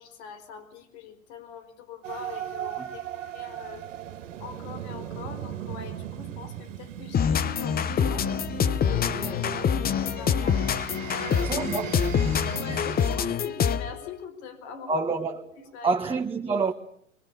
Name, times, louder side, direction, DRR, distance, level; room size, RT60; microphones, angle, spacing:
voice 1, 0.0-3.8 4.4-8.3 8.8-11.7 12.5-15.0 15.7-16.0, left 6 dB, 60° left, 4.6 m, -42 dB
sound 1, 2.0-13.4, right 10 dB, 70° right, 2.2 m, -38 dB
sound 2, 7.1-14.0, left 7 dB, 25° left, 1.0 m, -26 dB
voice 2, 11.3-12.0 12.7-13.1 14.9-15.6 15.8-16.7, right 4 dB, 15° right, 1.6 m, -28 dB
26.0 x 23.0 x 6.9 m
hypercardioid pair, 95°, 38 cm